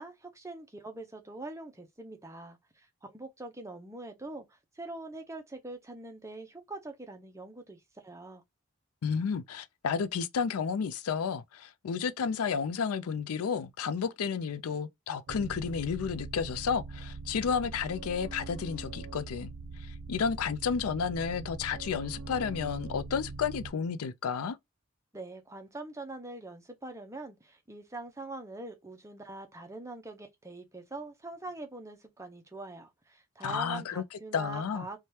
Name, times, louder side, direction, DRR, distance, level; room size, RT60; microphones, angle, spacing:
voice 1, 0.0-8.4 25.1-35.0, right 2 dB, 15° right, 0.5 m, -43 dB
voice 2, 9.0-19.5 19.8-24.6 33.4-34.0 34.3-34.9, left 6 dB, 85° left, 0.4 m, -32 dB
sound 1, 15.3-23.7, right 3 dB, 80° right, 0.5 m, -42 dB
2.8 x 2.2 x 3.1 m
head